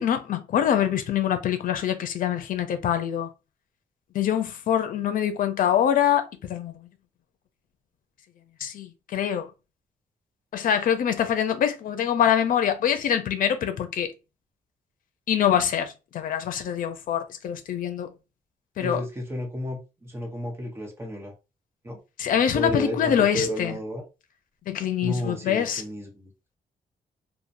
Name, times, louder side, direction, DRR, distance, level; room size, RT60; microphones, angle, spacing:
voice 1, 0.0-3.3 4.1-6.9 8.6-9.5 10.5-14.1 15.3-18.1 18.8-19.0 22.2-23.7 24.7-25.8, left 9 dB, 70° left, 0.5 m, -24 dB
voice 2, 18.8-21.3 21.8-22.0 22.5-24.0 25.0-26.3, equal, 15° right, 1.0 m, -32 dB
3.0 x 2.1 x 2.6 m
cardioid pair, 125°, 15 cm